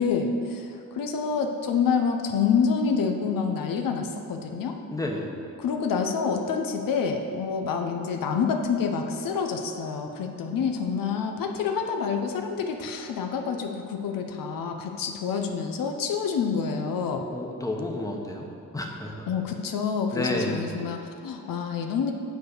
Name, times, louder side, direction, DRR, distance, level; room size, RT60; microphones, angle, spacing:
voice 1, 0.0-4.8 5.6-17.3 19.3-22.1, left 6 dB, 80° left, 4 dB, 0.8 m, -27 dB
voice 2, 4.9-5.3 17.3-19.3 20.1-20.7, left 1 dB, 10° left, 0 dB, 1.0 m, -31 dB
9.4 x 4.1 x 6.6 m, 2.6 s
cardioid pair, 105°, 33 cm